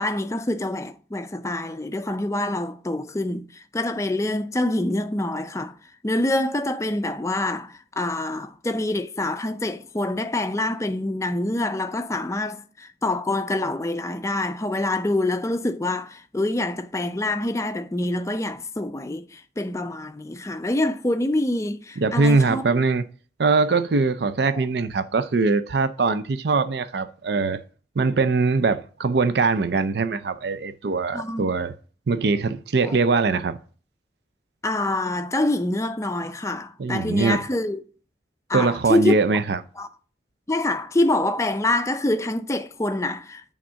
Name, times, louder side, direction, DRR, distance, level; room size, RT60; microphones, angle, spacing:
voice 1, 0.0-5.7 6.0-22.6 24.5-24.6 26.0-26.1 31.1-31.5 32.8-33.0 34.6-37.8 38.5-39.1 39.8-39.9 40.5-43.5, left 1 dB, 15° left, 0.4 m, -26 dB
voice 2, 22.0-23.0 23.4-27.6 28.0-31.7 32.1-33.6 36.8-37.4 38.5-39.6, right 4 dB, 60° right, 0.5 m, -22 dB
8.8 x 3.6 x 6.2 m
head